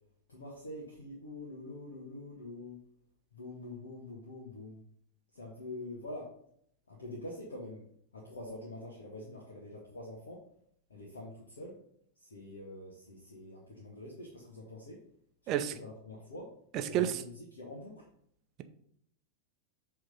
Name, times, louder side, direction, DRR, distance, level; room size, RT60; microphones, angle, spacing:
voice 1, 0.3-2.8 3.3-4.8 5.3-6.3 6.9-7.8 8.1-10.4 10.9-11.8 12.2-15.0 15.4-15.5 15.8-18.0, left 1 dB, 70° left, -3 dB, 1.6 m, -45 dB
voice 2, 16.7-17.2, right 11 dB, 35° right, 9 dB, 0.6 m, -30 dB
7.8 x 3.7 x 5.4 m, 0.68 s
figure-of-eight pair, 90°, 0 cm